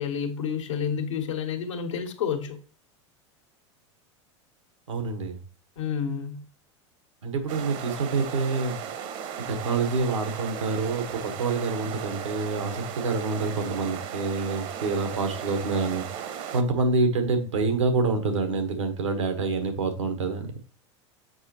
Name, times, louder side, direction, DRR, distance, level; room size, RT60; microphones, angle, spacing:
voice 1, 0.0-2.6 5.8-6.4, left 7 dB, 85° left, 4 dB, 1.3 m, -29 dB
voice 2, 4.9-5.4 7.2-8.8 9.5-16.1 16.5-20.5, right 3 dB, 85° right, 6 dB, 1.4 m, -27 dB
sound 1, 7.5-16.6, right 8 dB, 55° right, 1.0 m, -36 dB
7.7 x 5.2 x 3.0 m, 0.40 s
hypercardioid pair, 95°, 15 cm